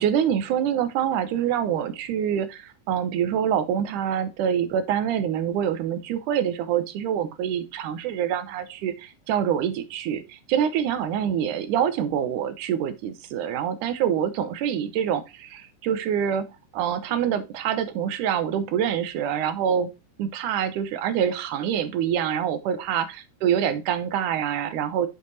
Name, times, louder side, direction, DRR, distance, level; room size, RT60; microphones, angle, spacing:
voice 1, 0.0-19.9 20.2-23.1 23.4-25.1, right 9 dB, 85° right, 2.4 m, -25 dB
7.8 x 4.7 x 4.0 m
omnidirectional pair, 3.5 m